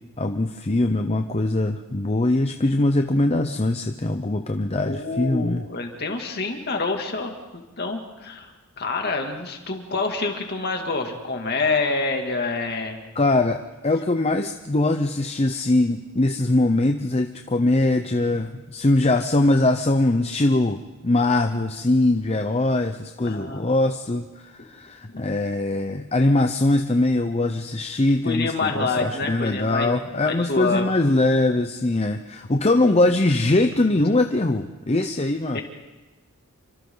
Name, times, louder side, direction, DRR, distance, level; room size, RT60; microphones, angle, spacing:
voice 1, 0.2-5.6 13.2-13.6 13.8-35.6, left 2 dB, 30° left, 6 dB, 0.7 m, -22 dB
voice 2, 4.8-8.5 8.8-13.0 23.2-23.7 24.6-24.7 25.1-25.2 28.2-30.0 30.2-30.9 35.5-35.6, left 3 dB, 50° left, 3 dB, 2.5 m, -27 dB
29.0 x 25.0 x 4.0 m, 1.1 s
head